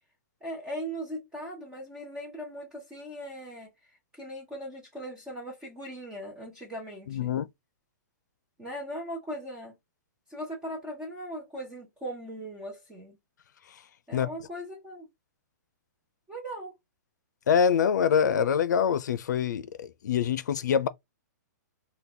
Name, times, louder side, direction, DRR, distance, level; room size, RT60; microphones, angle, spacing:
voice 1, 0.4-7.4 8.6-9.8 10.3-13.2 14.1-15.1 16.3-16.7, equal, 5° right, 0.6 m, -39 dB
voice 2, 7.1-7.5 14.1-14.3 17.5-20.9, left 7 dB, 70° left, 0.4 m, -25 dB
2.9 x 2.2 x 3.6 m
hypercardioid pair, 175°, 10 cm